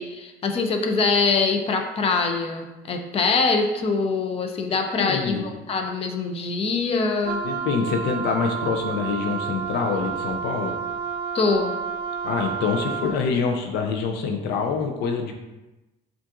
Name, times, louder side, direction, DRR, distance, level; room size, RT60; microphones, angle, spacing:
voice 1, 0.0-7.4 11.3-11.7, left 4 dB, 35° left, 4 dB, 0.5 m, -23 dB
voice 2, 4.7-5.4 7.4-10.7 12.2-15.3, left 5 dB, 85° left, 4 dB, 0.5 m, -26 dB
Wind instrument woodwind instrument, 7.2-13.2, right 6 dB, 60° right, 0.5 m, -30 dB
7.1 x 2.5 x 2.5 m, 1.1 s
cardioid pair, 110°, 17 cm